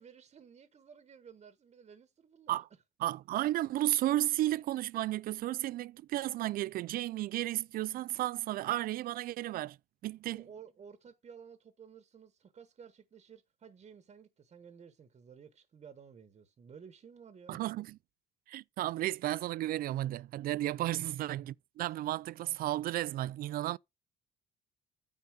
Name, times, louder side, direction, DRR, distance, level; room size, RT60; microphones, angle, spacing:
voice 1, 0.0-2.6 10.3-17.6 20.8-21.5, right 7 dB, 40° right, 1.2 m, -54 dB
voice 2, 3.0-9.8 10.0-10.5 17.5-17.9 18.5-23.8, right 15 dB, 60° right, 0.4 m, -33 dB
9.4 x 4.1 x 6.6 m
cardioid pair, 110°, 17 cm